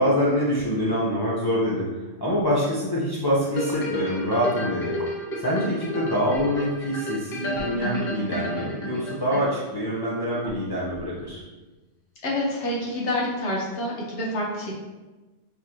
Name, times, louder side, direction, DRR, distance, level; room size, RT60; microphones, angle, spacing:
voice 1, 0.0-1.9 2.2-5.0 5.4-11.4, equal, 25° left, -8 dB, 0.6 m, -25 dB
sound 1, 2.2-2.5 3.5-3.8 4.9-5.1 6.3-6.6 7.4-7.7 9.4-9.5 10.4-11.6, right 2 dB, 50° right, 0.6 m, -44 dB
sound 2, 3.5-9.8 10.3-10.4, left 1 dB, 55° left, 0.9 m, -32 dB
voice 2, 12.2-14.7, left 1 dB, 85° left, -4 dB, 1.4 m, -27 dB
4.6 x 3.2 x 2.8 m, 1.2 s
omnidirectional pair, 1.2 m